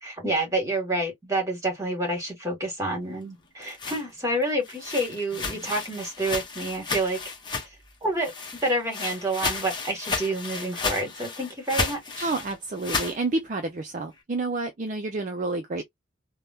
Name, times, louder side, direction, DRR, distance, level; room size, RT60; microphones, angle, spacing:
voice 1, 0.0-7.2 8.0-12.3, right 1 dB, 15° right, 1.7 m, -28 dB
sound 1, 3.4-7.9 8.2-13.2, left 4 dB, 25° left, 0.9 m, -33 dB
voice 2, 12.2-15.8, right 3 dB, 40° right, 0.4 m, -29 dB
3.4 x 2.2 x 2.6 m
head